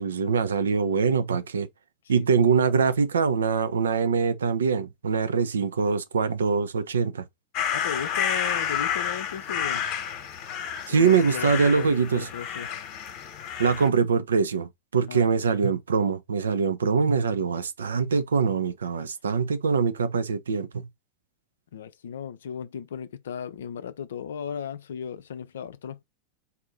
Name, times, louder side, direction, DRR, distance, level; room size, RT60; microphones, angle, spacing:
voice 1, 0.0-1.7 2.1-7.2 10.9-12.3 13.6-20.9, right 5 dB, 70° right, 0.6 m, -23 dB
voice 2, 2.1-2.5 7.7-9.8 10.9-12.7 15.1-15.3 21.7-26.0, left 8 dB, 60° left, 0.5 m, -36 dB
sound 1, 7.5-13.9, left 8 dB, 40° left, 1.1 m, -30 dB
4.2 x 2.7 x 3.8 m
figure-of-eight pair, 90°, 0 cm